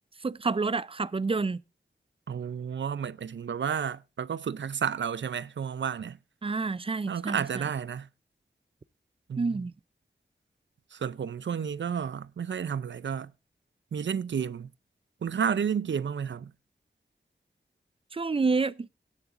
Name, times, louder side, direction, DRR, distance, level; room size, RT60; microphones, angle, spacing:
voice 1, 0.2-1.6 6.4-7.7 9.4-9.7 18.1-18.9, right 4 dB, 30° right, 0.5 m, -28 dB
voice 2, 2.3-6.2 7.1-8.1 9.3-9.6 10.9-13.3 13.9-14.7 15.2-16.5, right 7 dB, 85° right, 0.5 m, -31 dB
16.5 x 10.0 x 2.5 m
wide cardioid pair, 65°, 19 cm